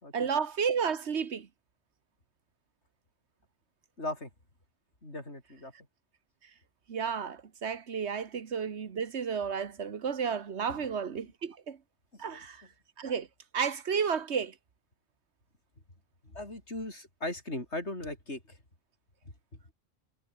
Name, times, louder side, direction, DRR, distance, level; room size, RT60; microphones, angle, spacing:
voice 1, 0.1-1.5 6.9-11.8 12.2-12.6 13.0-13.3 13.5-14.5, right 6 dB, 80° right, 1.6 m, -32 dB
voice 2, 4.0-4.3 5.0-5.7 10.7-10.9 12.1-12.4 16.3-18.6, left 2 dB, 90° left, 6.4 m, -38 dB
omnidirectional pair, 1.1 m